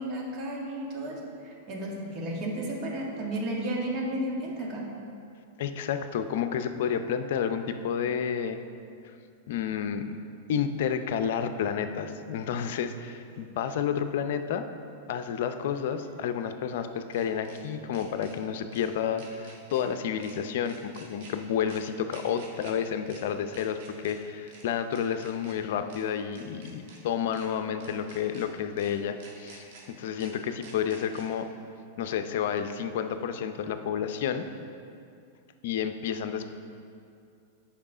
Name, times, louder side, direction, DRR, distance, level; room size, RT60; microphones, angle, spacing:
voice 1, 0.0-4.9, right 1 dB, 40° right, -2 dB, 1.8 m, -33 dB
voice 2, 5.6-8.6 9.5-10.2 10.5-14.6 15.1-29.7 30.0-31.5 32.0-34.5 35.6-36.5, left 8 dB, 65° left, 8 dB, 0.5 m, -30 dB
sound 1, 13.3-13.4 15.8-17.6 17.9-18.3 18.7-18.9 19.2-19.8 20.2-20.3 20.7-21.3 21.7-21.8 22.1-22.7 23.1-23.2 23.5-24.1 24.5-24.6 24.9-25.5 25.9-26.0 26.3-27.0 27.3-27.5 27.8-28.4 28.8-28.9 29.2-29.8 30.2-30.3 30.6-31.2, right 4 dB, 60° right, 1.8 m, -50 dB
8.9 x 5.6 x 4.9 m, 2.5 s
hypercardioid pair, 120°, 0 cm